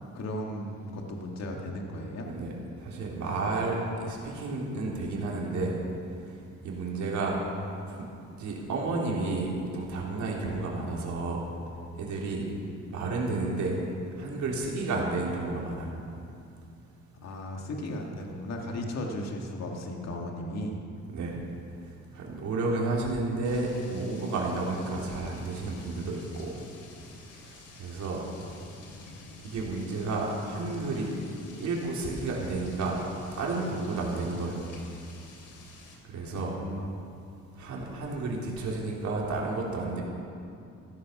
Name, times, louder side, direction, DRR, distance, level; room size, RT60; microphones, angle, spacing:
voice 1, 0.1-2.3 17.2-20.8 36.3-36.9, left 1 dB, 60° left, 1 dB, 2.1 m, -36 dB
voice 2, 2.8-5.7 6.6-7.4 7.9-8.1 8.4-11.5 11.9-12.5 12.9-13.8 14.2-15.9 21.1-21.4 22.1-26.6 27.4-28.2 29.4-31.1 31.6-33.0 33.4-34.6 36.1-36.6 37.6-40.0, right 3 dB, 70° right, -3 dB, 3.9 m, -31 dB
sound 1, 23.4-36.0, left 3 dB, 80° left, 2.9 m, -50 dB
15.5 x 14.0 x 6.0 m, 2.5 s
cardioid pair, 90°, 30 cm